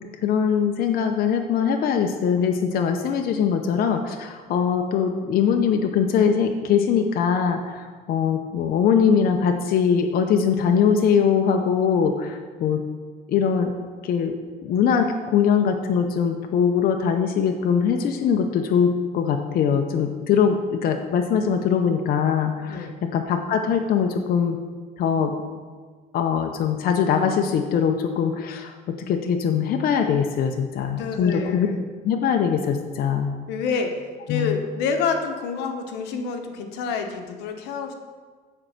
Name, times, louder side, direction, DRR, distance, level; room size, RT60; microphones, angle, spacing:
voice 1, 0.2-12.8 13.3-13.7 14.0-14.4 14.6-24.6 25.0-25.3 26.1-31.7 32.0-33.3 34.3-34.6, left 7 dB, 60° left, 5 dB, 0.7 m, -22 dB
voice 2, 30.9-31.8 33.5-33.9 34.3-37.9, left 5 dB, 90° left, 5 dB, 0.9 m, -28 dB
8.8 x 4.4 x 6.5 m, 1.5 s
cardioid pair, 110°, 17 cm